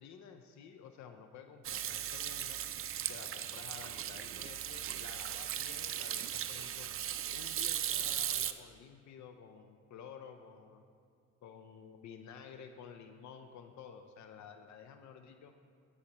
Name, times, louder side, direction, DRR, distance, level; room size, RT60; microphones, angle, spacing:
voice 1, 0.0-2.6 3.1-6.9 7.3-10.8 11.4-15.5, left 7 dB, 70° left, 7 dB, 0.6 m, -52 dB
Hands / Sink (filling or washing), 1.6-8.5, right 10 dB, 45° right, 0.4 m, -37 dB
15.5 x 6.4 x 3.0 m, 2.2 s
cardioid pair, 90°, 30 cm